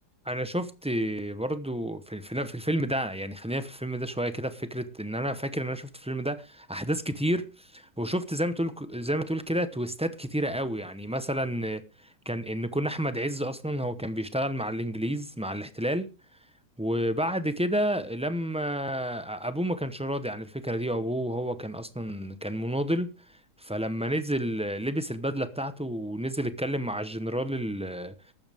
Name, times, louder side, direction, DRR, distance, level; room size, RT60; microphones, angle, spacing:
voice 1, 0.2-11.8 12.2-16.1 16.8-23.1 23.6-28.1, equal, 5° right, 0.4 m, -30 dB
15.0 x 12.5 x 3.5 m
omnidirectional pair, 1.8 m